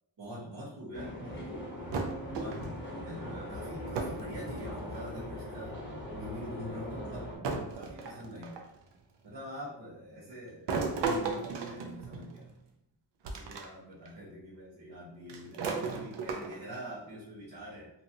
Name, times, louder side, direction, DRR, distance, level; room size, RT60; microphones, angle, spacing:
voice 1, 0.2-1.7 2.3-2.6 3.0-5.8 6.1-8.6 9.2-12.5 13.2-17.9, equal, 60° right, -8 dB, 1.0 m, -45 dB
sound 1, 0.9-7.4, left 1 dB, 25° left, 0.8 m, -40 dB
sound 2, 1.9-2.9 4.0-4.3 4.6-5.2 6.2-6.3 7.4-8.8 10.7-12.5 13.2-13.7 14.1-14.2 15.3-16.8, right 4 dB, 75° right, 0.6 m, -35 dB
2.9 x 2.6 x 2.6 m, 0.81 s
wide cardioid pair, 135°, 43 cm